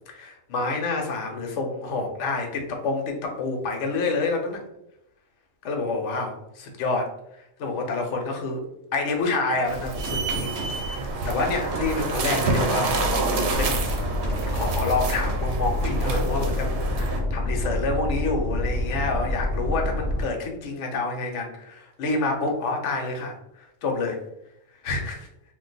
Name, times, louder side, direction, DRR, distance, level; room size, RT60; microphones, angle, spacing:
voice 1, 0.1-4.6 5.6-7.1 7.4-8.6 8.9-12.9 13.5-13.8 14.5-16.7 17.0-24.2 24.8-25.3, left 3 dB, 70° left, 2 dB, 1.0 m, -28 dB
sound 1, 9.7-17.2, right 3 dB, 65° right, 0.8 m, -28 dB
Gunshot gunfire, 10.0-16.5, right 2 dB, 35° right, 0.8 m, -37 dB
sound 2, 13.5-20.2, left 1 dB, 45° left, 0.6 m, -27 dB
2.5 x 2.2 x 3.9 m, 0.80 s
omnidirectional pair, 1.3 m